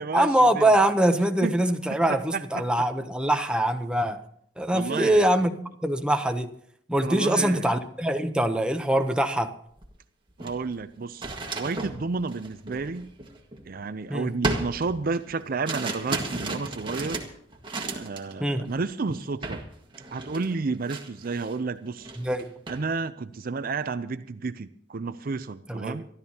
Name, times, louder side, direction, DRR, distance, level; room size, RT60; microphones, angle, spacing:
voice 1, 0.1-4.2 4.6-6.5 6.9-9.5 14.1-14.3 18.4-18.7 22.2-22.5 25.7-26.0, right 1 dB, 5° right, 0.8 m, -23 dB
voice 2, 2.1-2.6 4.7-5.3 7.0-7.7 10.4-13.1 13.7-17.2 17.9-19.6 20.1-22.1 22.7-26.1, right 4 dB, 50° right, 0.5 m, -31 dB
sound 1, 9.8-9.9 10.3-13.9 14.4-18.3 18.6-18.9 19.4-19.7 19.9-21.6 22.0-22.8, right 2 dB, 25° right, 1.7 m, -34 dB
25.0 x 13.0 x 2.9 m
head